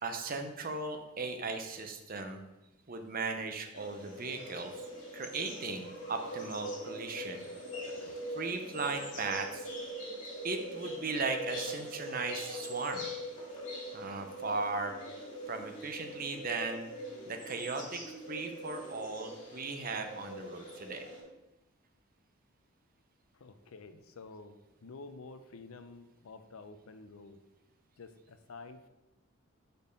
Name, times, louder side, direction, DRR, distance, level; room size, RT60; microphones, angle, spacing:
voice 1, 0.0-2.4 2.9-7.5 8.3-9.7 10.4-13.0 13.9-14.9 15.5-16.9 17.3-18.0 18.3-21.0, right 4 dB, 40° right, 6 dB, 0.7 m, -37 dB
sound 1, 3.7-21.2, equal, 35° left, 2.2 m, -42 dB
voice 2, 7.8-8.3 23.3-27.4 28.0-28.9, left 3 dB, 75° left, 10 dB, 0.5 m, -50 dB
5.3 x 4.4 x 5.2 m, 1.0 s
head